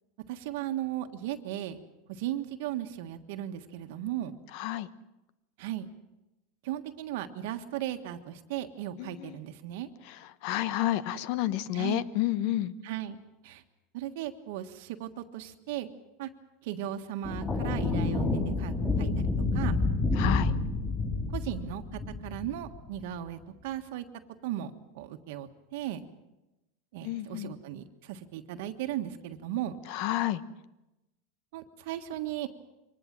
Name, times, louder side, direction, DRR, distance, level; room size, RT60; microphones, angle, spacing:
voice 1, 0.3-1.8 2.1-4.4 5.6-5.9 6.6-9.9 11.7-12.0 12.8-13.2 13.4-13.6 13.9-15.9 16.2-16.3 16.6-18.3 18.6-19.1 19.5-19.8 21.3-24.0 24.4-26.0 26.9-29.8 31.5-32.5, right 12 dB, 70° right, 7 dB, 1.5 m, -36 dB
voice 2, 4.5-4.9 9.0-9.4 10.1-10.2 10.4-12.7 20.2-20.5 27.0-27.5 29.9-30.4, left 14 dB, 60° left, 16 dB, 1.0 m, -30 dB
sound 1, 17.2-22.9, left 3 dB, 20° left, 5.3 m, -29 dB
23.5 x 19.5 x 7.5 m, 0.96 s
supercardioid pair, 135°, 0 cm